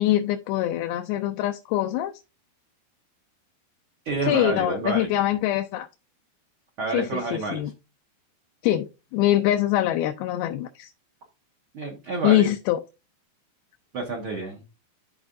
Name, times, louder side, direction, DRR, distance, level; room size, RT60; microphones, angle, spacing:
voice 1, 0.0-2.1 4.3-5.9 6.9-7.7 8.6-10.9 12.2-12.8, left 13 dB, 80° left, 5 dB, 2.4 m, -24 dB
voice 2, 4.0-5.1 6.8-7.6 11.7-12.5 13.9-14.6, right 3 dB, 60° right, -1 dB, 1.4 m, -29 dB
13.0 x 4.3 x 2.6 m, 0.28 s
omnidirectional pair, 4.5 m